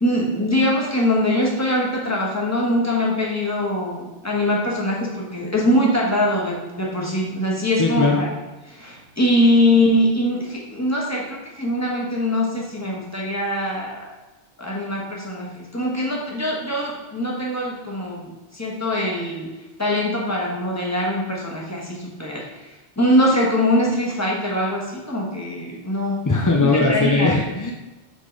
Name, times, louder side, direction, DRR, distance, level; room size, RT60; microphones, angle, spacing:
voice 1, 0.0-8.3 8.7-14.0 14.6-19.5 19.8-26.2 26.6-27.3, left 1 dB, 15° left, -3 dB, 1.4 m, -22 dB
voice 2, 7.8-8.2 26.3-27.7, left 3 dB, 30° left, 0 dB, 0.3 m, -19 dB
8.1 x 3.8 x 3.9 m, 1.1 s
omnidirectional pair, 1.2 m